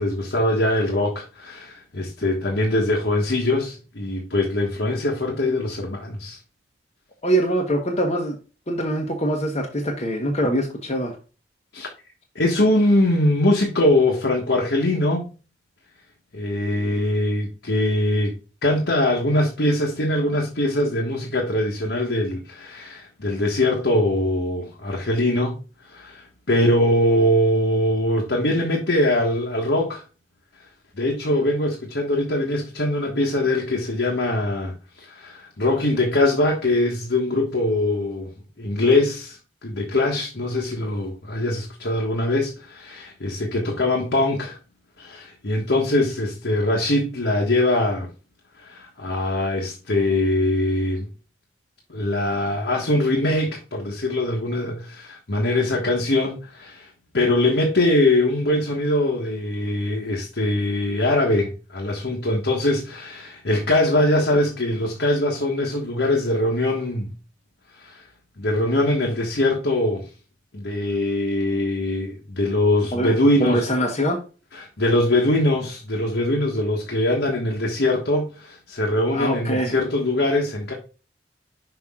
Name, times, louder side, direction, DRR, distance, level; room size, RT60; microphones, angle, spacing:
voice 1, 0.0-6.4 11.7-11.9 12.3-15.3 16.3-18.4 18.6-25.6 25.9-30.0 31.0-38.3 38.6-44.6 45.0-48.1 48.6-51.0 51.9-56.9 57.1-67.1 67.8-68.0 68.4-70.1 70.5-73.6 74.5-80.7, left 1 dB, 70° left, 1.4 m, -22 dB
voice 2, 7.2-8.4 8.7-11.1 72.9-73.1 73.4-74.2 79.1-79.7, right 1 dB, 35° left, 1.0 m, -23 dB
6.0 x 5.2 x 3.6 m
head